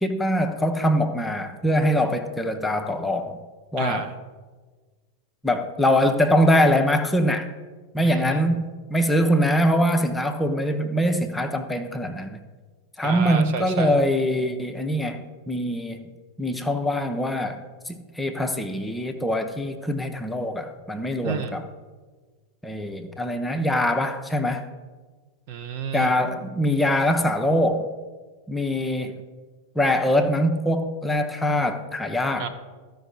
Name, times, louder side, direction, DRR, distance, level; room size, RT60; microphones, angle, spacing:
voice 1, 0.0-3.4 3.7-4.1 5.4-7.5 7.9-12.4 13.0-15.2 15.5-16.1 16.4-17.6 17.9-21.6 22.6-24.7 25.9-27.9 28.5-29.2 29.8-32.5, equal, 5° left, 6 dB, 0.6 m, -23 dB
voice 2, 3.8-4.1 8.0-8.4 13.0-14.0 21.2-21.6 25.5-26.1 32.4-32.5, right 6 dB, 45° right, 7 dB, 0.8 m, -30 dB
13.5 x 5.1 x 4.0 m, 1.4 s
figure-of-eight pair, 90°, 0 cm